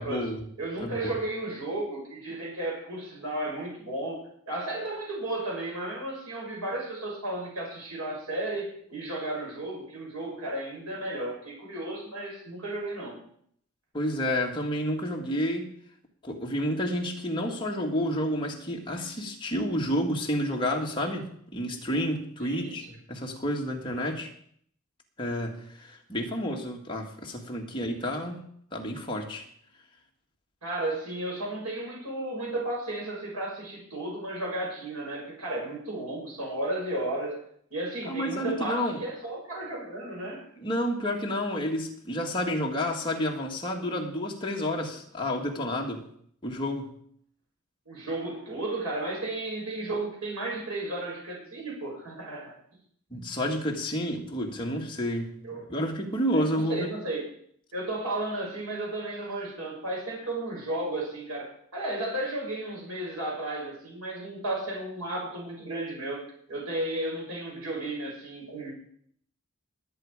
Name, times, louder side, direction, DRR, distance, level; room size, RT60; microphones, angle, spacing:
voice 1, 0.0-0.4 0.8-1.2 13.9-15.7 16.2-24.3 25.2-28.4 28.7-29.4 38.1-39.0 40.6-46.0 46.4-47.0 53.1-55.3 55.7-56.9, equal, 20° left, 0 dB, 1.8 m, -30 dB
voice 2, 0.6-13.2 22.4-22.8 30.6-37.4 37.7-40.4 47.9-52.5 55.4-55.7 56.3-57.3 57.7-66.2 66.5-68.7, right 1 dB, 90° right, -3 dB, 6.5 m, -34 dB
20.0 x 8.5 x 4.9 m, 0.65 s
head